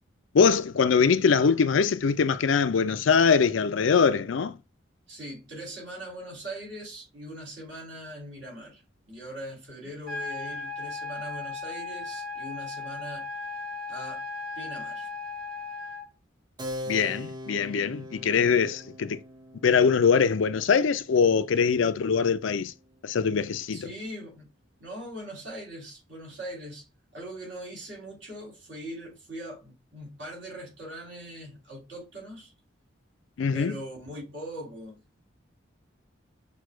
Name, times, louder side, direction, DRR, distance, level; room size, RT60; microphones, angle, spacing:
voice 1, 0.3-4.6 16.9-19.2 19.6-22.7 23.0-23.9 33.4-33.8, left 6 dB, 80° left, 0.4 m, -23 dB
voice 2, 5.1-8.8 9.1-13.3 13.9-14.2 14.5-15.1 23.7-24.5 24.8-26.9 27.1-32.5 33.5-35.0, right 1 dB, 65° right, 2.6 m, -41 dB
sound 1, 10.1-16.1, left 3 dB, 50° right, 1.7 m, -36 dB
Keyboard (musical), 16.6-22.7, left 1 dB, 20° right, 0.6 m, -42 dB
6.1 x 2.3 x 3.2 m
head